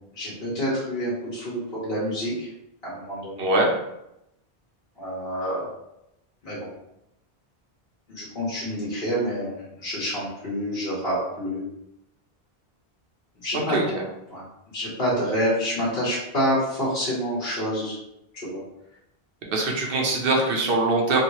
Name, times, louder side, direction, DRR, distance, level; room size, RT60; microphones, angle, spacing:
voice 1, 0.1-2.5 2.8-3.5 5.0-5.7 6.4-6.7 8.1-11.6 13.4-13.8 14.3-18.0 18.3-18.6, equal, 60° left, -8 dB, 1.3 m, -28 dB
voice 2, 3.4-3.7 13.7-14.0 19.5-21.2, right 2 dB, 65° right, 0 dB, 0.9 m, -22 dB
3.1 x 2.9 x 2.9 m, 0.85 s
omnidirectional pair, 1.1 m